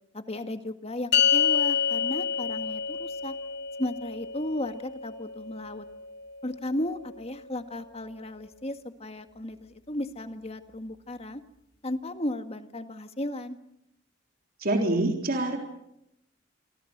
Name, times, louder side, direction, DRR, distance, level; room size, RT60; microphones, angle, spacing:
voice 1, 0.1-3.3 3.8-5.9 6.4-11.4 11.8-13.6, left 1 dB, 30° left, 8 dB, 1.9 m, -35 dB
sound 1, 1.1-7.7, left 7 dB, 55° left, 2.6 m, -29 dB
voice 2, 14.6-15.6, right 2 dB, 45° right, 2 dB, 3.8 m, -25 dB
28.0 x 26.0 x 6.7 m, 0.80 s
head